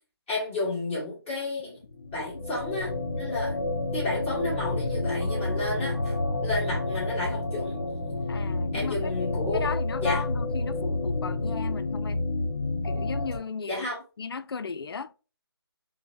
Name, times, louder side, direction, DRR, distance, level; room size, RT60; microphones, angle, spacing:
voice 1, 0.3-1.8 2.1-3.7 3.9-6.1 6.4-7.8 8.3-8.4 8.7-9.7 10.0-10.2 13.7-14.0, left 2 dB, 10° left, 1.5 m, -32 dB
sound 1, 1.8-13.4, left 2 dB, 50° left, 1.1 m, -29 dB
voice 2, 8.3-9.1 9.5-12.2 12.8-13.9 14.2-15.1, left 5 dB, 70° left, 0.4 m, -36 dB
4.7 x 2.0 x 2.6 m
figure-of-eight pair, 155°, 13 cm